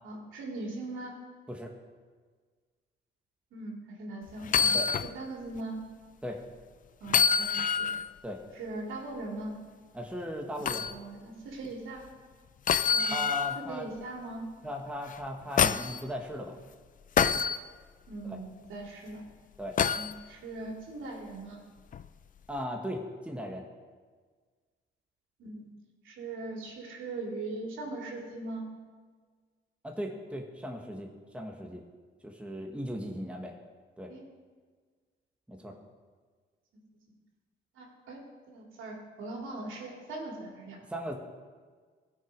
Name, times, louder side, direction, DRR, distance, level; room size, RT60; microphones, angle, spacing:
voice 1, 0.0-1.1 3.5-4.8 5.1-5.8 7.0-7.9 8.5-9.5 10.7-12.0 12.9-13.2 13.5-14.5 18.1-19.2 19.9-21.6 25.4-25.7 26.0-28.7 34.1-34.2 35.6-35.7 37.8-38.2 38.5-40.8, right 2 dB, 80° right, -1 dB, 2.7 m, -40 dB
sound 1, 4.4-5.1 5.6-5.7 7.1-8.1 10.7-10.9 12.7-13.6 15.1-16.0 17.2-17.6 19.8-20.1 21.9-22.1, left 7 dB, 40° left, 0.5 m, -26 dB
voice 2, 9.9-10.9 13.1-13.9 14.6-16.6 18.2-18.4 19.6-19.8 22.5-23.7 29.8-31.8 32.2-33.5 34.0-34.1 35.5-35.7 40.9-41.1, equal, 5° right, 1 dB, 1.5 m, -37 dB
16.5 x 6.2 x 5.2 m, 1.5 s
cardioid pair, 90°, 20 cm